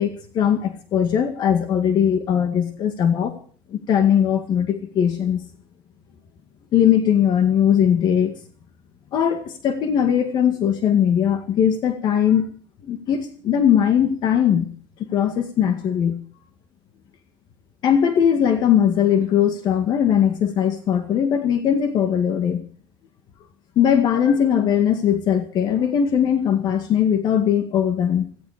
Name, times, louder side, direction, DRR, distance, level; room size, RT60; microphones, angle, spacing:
voice 1, 0.0-3.3 3.7-5.4 6.7-8.4 9.1-12.5 12.8-14.7 15.0-16.2 17.8-22.6 23.8-28.3, left 9 dB, 45° left, 7 dB, 2.0 m, -19 dB
17.5 x 16.0 x 5.0 m, 0.43 s
cardioid pair, 155°, 10 cm